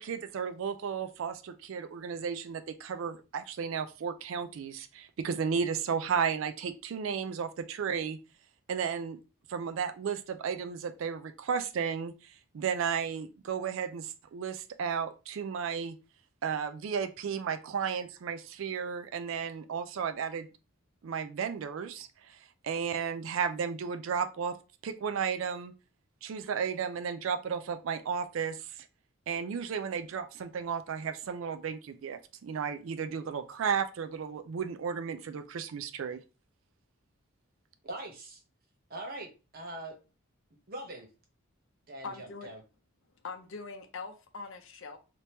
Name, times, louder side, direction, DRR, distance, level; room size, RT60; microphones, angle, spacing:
voice 1, 0.0-8.2 8.7-9.2 9.5-15.9 16.4-20.5 21.0-24.6 24.8-25.7 26.2-28.9 29.3-36.2, right 6 dB, 65° right, 0.4 m, -34 dB
voice 2, 37.8-38.4 38.9-40.0 40.7-41.1 41.9-42.6, right 1 dB, 45° right, 0.9 m, -42 dB
voice 3, 42.0-42.5 43.2-45.0, left 4 dB, 60° left, 0.6 m, -42 dB
3.4 x 2.9 x 2.8 m
head